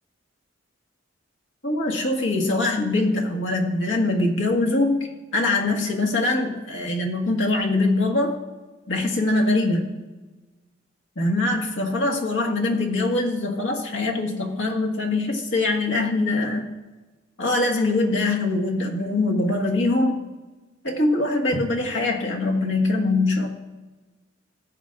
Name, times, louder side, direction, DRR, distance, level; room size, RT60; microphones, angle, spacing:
voice 1, 1.6-5.1 5.3-8.4 8.9-9.9 11.1-16.7 17.4-20.2 20.8-23.5, left 2 dB, 75° left, 0 dB, 1.6 m, -23 dB
18.0 x 7.8 x 2.5 m, 1.2 s
head